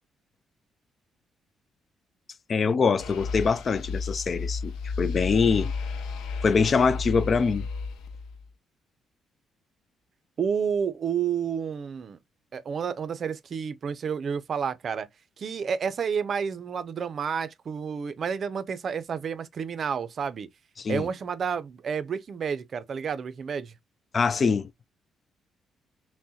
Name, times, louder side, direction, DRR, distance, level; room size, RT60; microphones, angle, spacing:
voice 1, 2.5-5.7 6.4-7.7 20.8-21.0 24.1-24.7, left 5 dB, 45° left, 0.3 m, -24 dB
sound 1, 3.0-8.5, left 4 dB, 85° left, 0.6 m, -33 dB
voice 2, 10.4-12.2 12.5-15.1 15.4-20.5 20.9-23.7, right 7 dB, 50° right, 0.5 m, -30 dB
5.9 x 2.1 x 2.7 m
cardioid pair, 90°, 0 cm